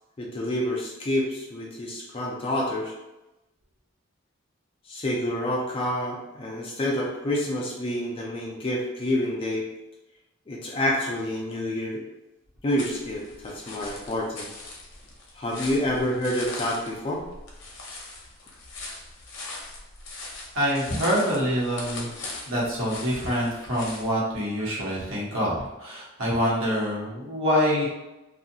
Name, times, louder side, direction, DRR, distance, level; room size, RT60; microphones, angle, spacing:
voice 1, 0.2-2.9 4.9-9.7 10.5-12.0 12.6-14.5 15.4-17.2, left 1 dB, 25° left, -2 dB, 0.4 m, -28 dB
sound 1, 12.8-24.1, left 2 dB, 65° left, 0.6 m, -40 dB
voice 2, 20.5-22.1 22.5-27.9, equal, 80° right, -6 dB, 1.0 m, -26 dB
2.7 x 2.4 x 2.6 m, 0.97 s
head